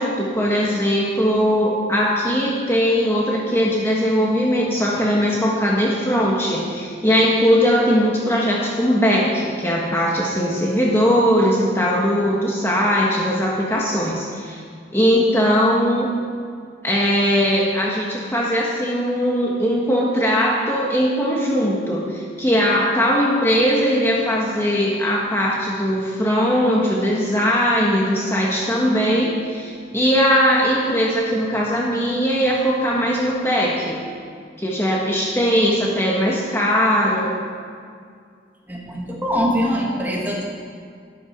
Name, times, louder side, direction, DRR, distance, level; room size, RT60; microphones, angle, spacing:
voice 1, 0.0-14.6 14.9-16.1 16.8-34.0 34.6-37.3, equal, 15° left, -3 dB, 1.3 m, -19 dB
voice 2, 38.7-40.5, equal, 10° right, -2 dB, 1.9 m, -23 dB
12.5 x 10.0 x 6.0 m, 2.2 s
head